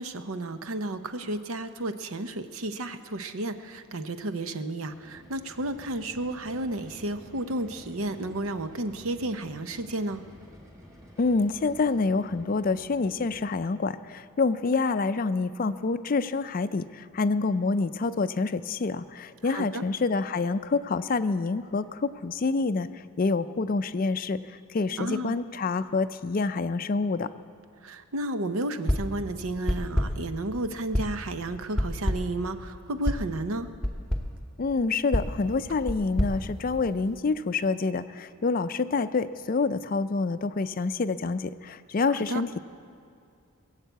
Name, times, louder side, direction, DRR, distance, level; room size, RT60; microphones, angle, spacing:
voice 1, 0.0-10.2 19.4-19.8 25.0-25.3 27.8-33.7 42.2-42.4, right 1 dB, 75° right, 9 dB, 0.8 m, -32 dB
sound 1, 4.8-13.6, equal, 15° right, 2.8 m, -51 dB
voice 2, 11.2-22.9 23.2-24.4 24.7-27.3 34.6-42.6, left 4 dB, 40° left, 12 dB, 0.4 m, -27 dB
sound 2, 28.9-29.2 29.7-30.3 30.9-31.3 31.8-32.4 33.0-33.3 33.8-34.4 35.1-37.2, left 1 dB, 5° left, 0.8 m, -29 dB
22.0 x 7.4 x 8.0 m, 2.4 s
head